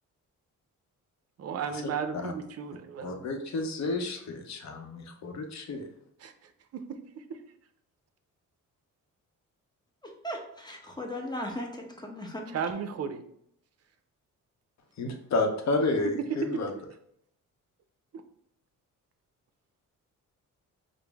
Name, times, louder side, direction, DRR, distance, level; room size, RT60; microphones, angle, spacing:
voice 1, 1.4-3.3 6.2-6.3 6.7-6.8 7.3-7.4 12.5-13.2 16.5-16.6, right 6 dB, 50° right, 8 dB, 0.5 m, -34 dB
voice 2, 3.0-5.8 15.0-16.7, left 2 dB, 55° left, 5 dB, 0.7 m, -30 dB
voice 3, 10.0-12.6, left 1 dB, 15° left, 1 dB, 0.8 m, -37 dB
5.0 x 2.0 x 3.4 m, 0.71 s
cardioid pair, 95°, 33 cm